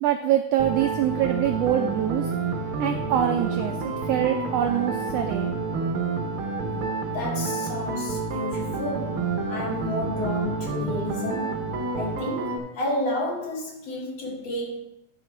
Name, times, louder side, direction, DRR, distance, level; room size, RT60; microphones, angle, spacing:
voice 1, 0.0-2.3 2.8-5.5, right 11 dB, 90° right, 5 dB, 1.4 m, -24 dB
sound 1, 0.6-12.6, right 4 dB, 65° right, 1.4 m, -29 dB
voice 2, 7.1-11.6 11.9-14.8, left 1 dB, 60° left, -2 dB, 3.0 m, -31 dB
10.5 x 5.6 x 4.5 m, 0.82 s
omnidirectional pair, 3.5 m